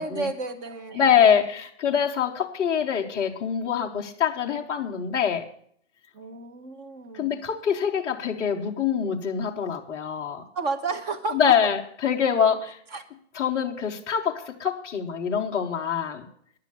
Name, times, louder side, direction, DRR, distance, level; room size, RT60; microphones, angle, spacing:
voice 1, 0.0-1.4 6.1-7.4 10.5-11.5 12.9-13.0, right 3 dB, 25° right, 5 dB, 1.4 m, -32 dB
voice 2, 0.9-5.4 7.1-10.4 11.3-12.8 13.3-16.3, left 8 dB, 10° left, -3 dB, 0.5 m, -24 dB
10.5 x 8.2 x 9.4 m, 0.63 s
hypercardioid pair, 150°, 36 cm